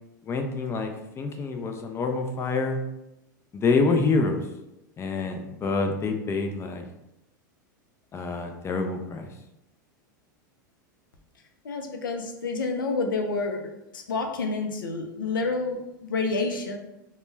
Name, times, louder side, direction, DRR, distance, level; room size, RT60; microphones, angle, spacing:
voice 1, 0.2-2.8 3.5-4.4 5.0-6.9 8.1-9.3, left 3 dB, 25° left, 4 dB, 0.4 m, -27 dB
voice 2, 11.6-13.6 13.9-16.8, left 3 dB, 90° left, 4 dB, 0.4 m, -28 dB
2.2 x 2.0 x 3.2 m, 0.89 s
hypercardioid pair, 100°, 11 cm